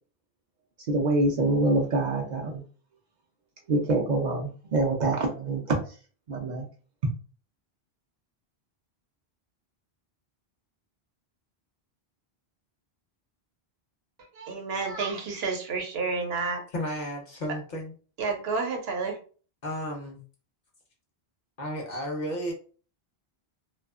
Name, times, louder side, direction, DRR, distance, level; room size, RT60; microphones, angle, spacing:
voice 1, 0.9-2.6 3.7-5.8 6.3-6.6, right 2 dB, 55° right, 0 dB, 0.5 m, -25 dB
voice 2, 14.4-16.6 18.2-19.2, right 4 dB, 75° right, 3 dB, 0.9 m, -30 dB
voice 3, 16.7-17.9 19.6-20.2 21.6-22.5, equal, 55° left, 1 dB, 0.6 m, -33 dB
2.6 x 2.3 x 2.4 m, 0.40 s
omnidirectional pair, 1.1 m